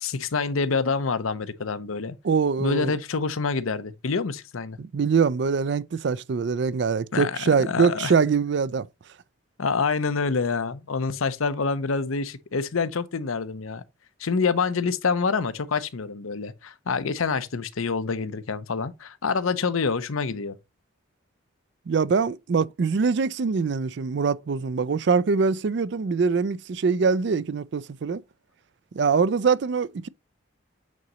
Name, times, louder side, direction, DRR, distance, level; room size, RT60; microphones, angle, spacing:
voice 1, 0.0-2.2 2.6-4.8 7.1-8.1 9.6-13.8 14.2-20.5, left 4 dB, 85° left, 0.7 m, -27 dB
voice 2, 2.2-2.9 4.8-8.9 21.9-28.2 28.9-30.1, right 5 dB, 55° right, 0.4 m, -23 dB
8.4 x 3.9 x 3.0 m
head